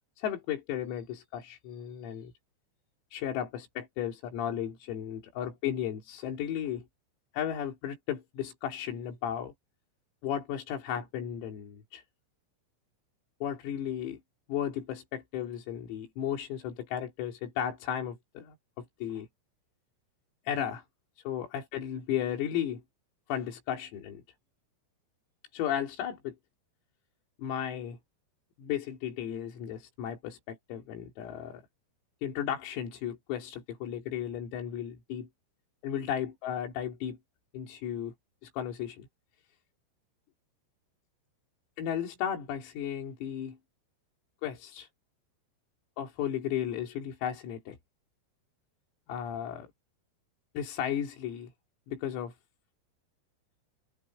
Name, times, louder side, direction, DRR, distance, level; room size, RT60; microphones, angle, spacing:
voice 1, 0.2-2.3 3.1-6.9 7.3-9.5 10.2-12.0 13.4-14.2 14.5-19.3 20.5-20.9 21.3-22.8 23.3-24.2 25.5-26.4 27.4-28.0 28.6-31.6 32.2-35.3 35.8-37.2 37.5-38.1 38.4-39.1 41.8-43.6 44.4-44.9 46.0-47.8 49.1-49.7 50.6-51.5 51.9-52.4, left 9 dB, 90° left, 6.2 m, -34 dB
omnidirectional pair, 5.9 m